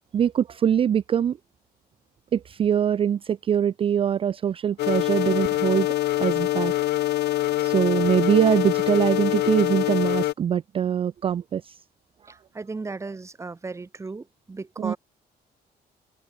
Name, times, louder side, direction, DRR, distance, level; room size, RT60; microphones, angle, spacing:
voice 1, 0.1-1.4 2.3-5.9 6.2-6.7 7.6-11.8 14.8-14.9, right 9 dB, 35° right, 0.5 m, -23 dB
sound 1, 4.8-10.3, left 14 dB, 80° left, 2.6 m, -24 dB
voice 2, 12.3-15.0, right 3 dB, 15° right, 4.0 m, -36 dB
cardioid pair, 170°, 17 cm